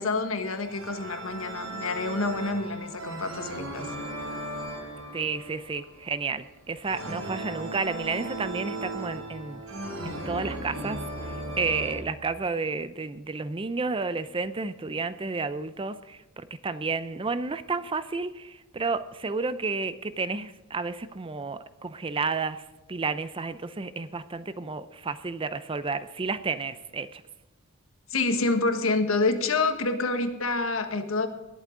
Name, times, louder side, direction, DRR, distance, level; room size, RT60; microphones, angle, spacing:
voice 1, 0.0-3.9 28.1-31.3, left 3 dB, 70° left, 7 dB, 1.4 m, -27 dB
sound 1, 0.6-12.0, right 1 dB, 80° right, 3.9 m, -37 dB
voice 2, 5.1-9.6 10.0-27.2, right 4 dB, 25° right, 13 dB, 0.5 m, -31 dB
19.5 x 8.1 x 3.8 m, 1.1 s
head